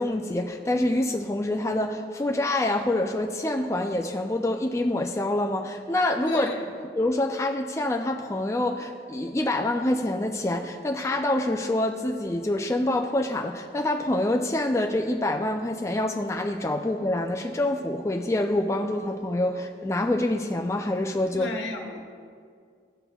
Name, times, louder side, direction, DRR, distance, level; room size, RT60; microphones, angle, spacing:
voice 1, 0.0-6.6 7.0-21.5, left 1 dB, 15° left, 3 dB, 0.3 m, -26 dB
voice 2, 6.3-6.6 21.3-22.0, left 2 dB, 85° left, 2 dB, 1.1 m, -33 dB
15.5 x 5.8 x 2.3 m, 2.2 s
head